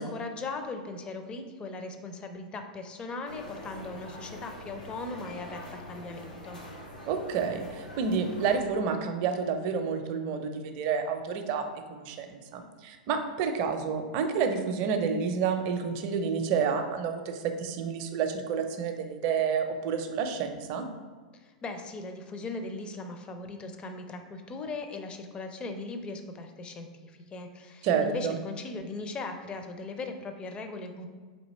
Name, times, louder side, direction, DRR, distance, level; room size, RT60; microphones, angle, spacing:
voice 1, 0.0-6.6 21.3-31.1, left 3 dB, 25° left, 6 dB, 0.5 m, -39 dB
sound 1, 3.3-8.6, left 1 dB, 80° left, 0.9 m, -44 dB
voice 2, 7.1-20.9 27.8-28.3, right 6 dB, 45° right, 6 dB, 0.5 m, -29 dB
3.3 x 2.7 x 4.1 m, 1.5 s
hypercardioid pair, 100°, 4 cm